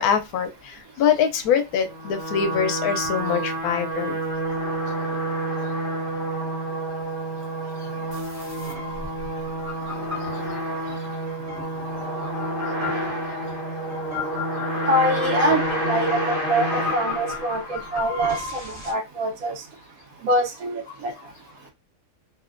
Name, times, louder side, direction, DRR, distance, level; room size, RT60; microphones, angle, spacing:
voice 1, 0.0-4.2, left 8 dB, 85° left, 1.1 m, -24 dB
sound 1, 1.8-18.1, right 1 dB, 40° left, 0.9 m, -29 dB
sound 2, 8.1-18.9, left 5 dB, 35° right, 1.3 m, -36 dB
voice 2, 14.9-19.5 20.2-21.1, right 1 dB, 70° right, 1.2 m, -24 dB
3.1 x 2.1 x 2.4 m
omnidirectional pair, 1.6 m